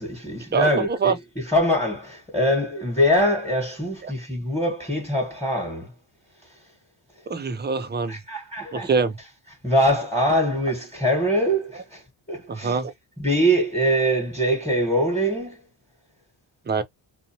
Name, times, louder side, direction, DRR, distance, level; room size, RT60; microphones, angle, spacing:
voice 1, 0.0-5.9 8.1-8.9 9.6-12.0 12.3-12.8 13.2-15.6, equal, 5° left, 1.3 m, -23 dB
voice 2, 0.5-1.2 4.0-4.1 7.3-8.2 8.7-9.2 12.5-12.9 16.7-16.8, right 5 dB, 20° right, 0.5 m, -24 dB
2.6 x 2.2 x 2.6 m
cardioid pair, 75°, 49 cm